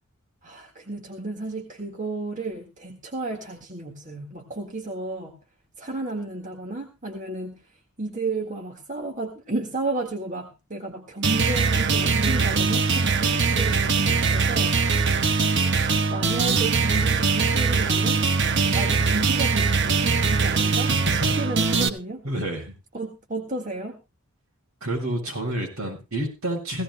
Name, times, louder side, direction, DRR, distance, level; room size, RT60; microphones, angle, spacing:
voice 1, 0.4-5.4 5.8-18.2 18.7-22.2 22.9-24.0, right 2 dB, 35° right, 3 dB, 1.7 m, -33 dB
sound 1, 11.2-21.9, right 4 dB, 55° right, 1.0 m, -22 dB
voice 2, 20.9-21.2 22.2-22.7 24.8-26.8, right 1 dB, 75° right, 2 dB, 7.2 m, -29 dB
17.0 x 17.0 x 2.2 m, 0.28 s
head